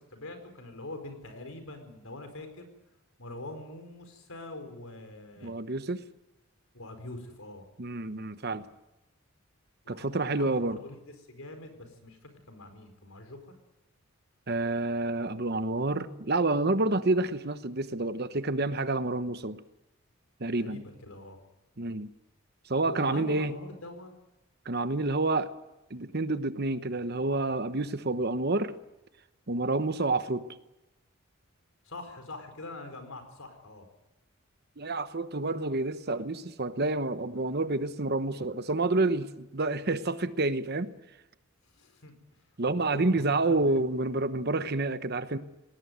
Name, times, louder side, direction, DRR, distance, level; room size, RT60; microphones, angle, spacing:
voice 1, 0.1-2.7 3.2-5.5 6.7-7.6 9.8-13.5 20.5-21.4 22.8-24.2 29.6-29.8 31.8-33.9 41.7-42.1 42.7-43.6, left 2 dB, 70° left, 7 dB, 4.6 m, -44 dB
voice 2, 5.4-6.0 7.8-8.7 9.9-10.8 14.5-19.6 20.4-20.8 21.8-22.1 22.7-23.5 24.6-25.5 25.9-28.8 29.5-30.5 34.8-40.9 42.6-45.4, right 2 dB, 45° right, 12 dB, 1.0 m, -29 dB
20.0 x 18.5 x 9.4 m, 0.97 s
head